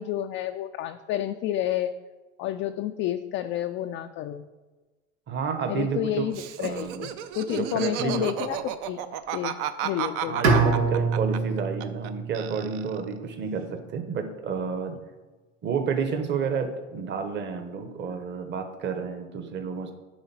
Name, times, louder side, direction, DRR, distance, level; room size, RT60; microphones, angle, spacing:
voice 1, 0.0-1.9 2.4-4.4 5.7-7.1 7.4-9.0 9.3-9.6 9.8-10.4, left 11 dB, 35° left, 7 dB, 0.4 m, -30 dB
voice 2, 5.3-6.3 6.6-7.1 7.5-8.3 10.3-15.0 15.6-19.9, right 6 dB, 30° right, 7 dB, 1.1 m, -30 dB
Laughter, 6.3-12.1 12.3-13.1, right 11 dB, 50° right, 0.7 m, -33 dB
Bowed string instrument, 10.4-13.5, right 4 dB, 80° right, 1.6 m, -26 dB
9.7 x 3.8 x 5.8 m, 1.2 s
hypercardioid pair, 105°, 36 cm